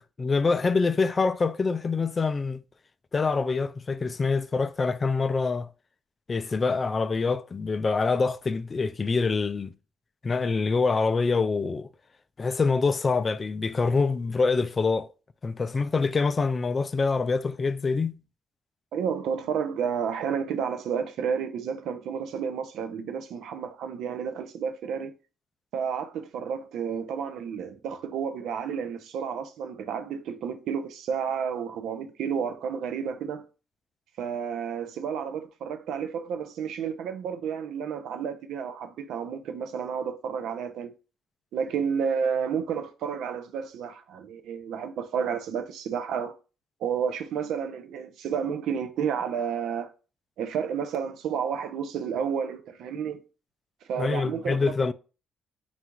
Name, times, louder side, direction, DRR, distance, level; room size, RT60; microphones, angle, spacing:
voice 1, 0.0-2.6 3.1-5.7 6.3-9.7 10.2-11.9 12.4-15.1 15.4-18.2 54.0-54.9, left 4 dB, 35° left, 0.3 m, -25 dB
voice 2, 18.9-25.1 25.7-33.5 34.2-40.9 41.5-46.3 46.8-49.9 50.4-53.2 53.9-54.6, right 7 dB, 80° right, 0.5 m, -31 dB
4.0 x 2.4 x 4.5 m
cardioid pair, 90°, 0 cm